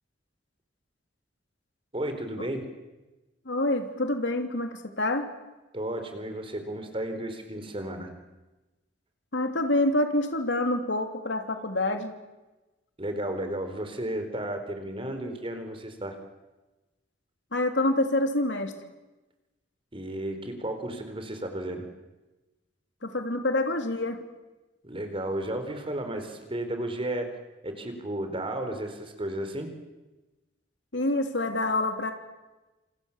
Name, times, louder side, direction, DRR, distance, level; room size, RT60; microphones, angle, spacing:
voice 1, 1.9-2.7 5.7-8.1 13.0-16.2 19.9-21.9 24.8-27.3 27.6-29.7, right 1 dB, 30° right, 7 dB, 4.3 m, -33 dB
voice 2, 3.4-5.3 9.3-12.1 17.5-18.7 23.0-24.2 30.9-32.1, left 1 dB, 75° left, 6 dB, 3.2 m, -27 dB
28.0 x 27.5 x 7.4 m, 1.1 s
head